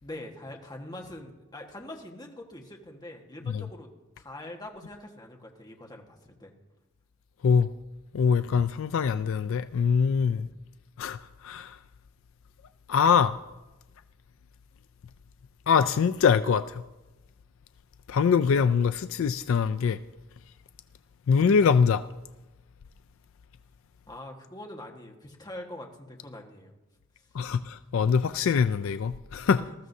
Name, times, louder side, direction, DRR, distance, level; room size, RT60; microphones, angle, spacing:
voice 1, 0.0-3.9 4.2-6.5 24.1-26.7 29.6-29.7, left 1 dB, 20° left, 1.4 m, -43 dB
voice 2, 8.1-10.4 11.0-11.2 11.4-11.8 12.9-13.4 15.7-16.8 18.1-20.0 21.3-22.0 27.3-29.6, left 6 dB, 60° left, 0.3 m, -23 dB
20.0 x 14.0 x 2.7 m
head